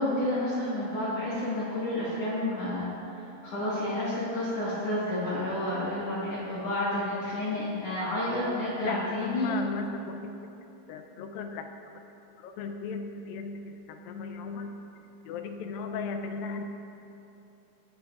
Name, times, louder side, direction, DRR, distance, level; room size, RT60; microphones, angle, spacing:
voice 1, 0.0-9.6, left 1 dB, 50° left, -10 dB, 2.5 m, -30 dB
voice 2, 8.8-10.3 10.9-11.7 12.4-14.9 15.3-16.6, left 4 dB, 85° left, 5 dB, 2.4 m, -36 dB
19.5 x 8.7 x 2.5 m, 2.9 s
omnidirectional pair, 4.0 m